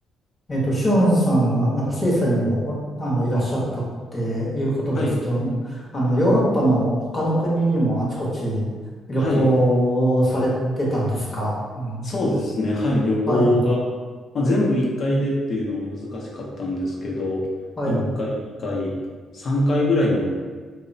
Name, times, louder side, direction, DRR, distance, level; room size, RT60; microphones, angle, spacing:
voice 1, 0.5-3.8 4.1-8.7 9.1-12.1 13.3-13.5 17.8-18.1, right 1 dB, 35° left, -5 dB, 0.9 m, -22 dB
voice 2, 9.2-9.5 12.0-13.8 14.3-17.4 17.9-18.3 18.6-18.9 19.3-20.3, left 1 dB, 50° left, -3 dB, 0.6 m, -23 dB
2.8 x 2.0 x 2.6 m, 1.4 s
cardioid pair, 90°, 0 cm